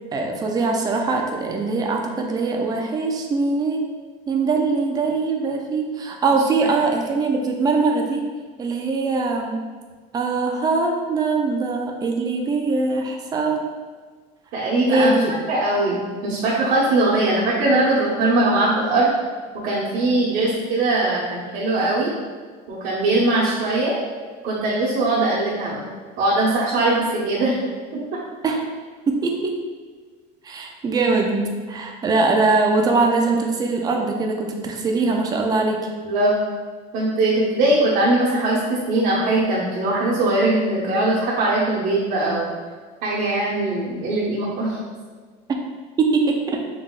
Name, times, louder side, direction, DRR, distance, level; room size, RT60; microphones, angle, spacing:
voice 1, 0.1-3.9 4.3-8.3 8.6-9.6 10.1-13.7 14.9-15.3 28.4-28.6 29.1-29.6 30.4-35.9 45.5-45.6 46.0-46.6, right 3 dB, 20° right, 2 dB, 0.4 m, -22 dB
voice 2, 14.5-15.1 15.5-19.1 19.6-22.1 22.7-23.9 24.4-25.8 26.2-27.6 36.0-36.3 36.9-42.5 43.0-44.8, right 2 dB, 60° right, -10 dB, 1.2 m, -20 dB
5.5 x 3.5 x 2.4 m, 1.5 s
cardioid pair, 160°, 20 cm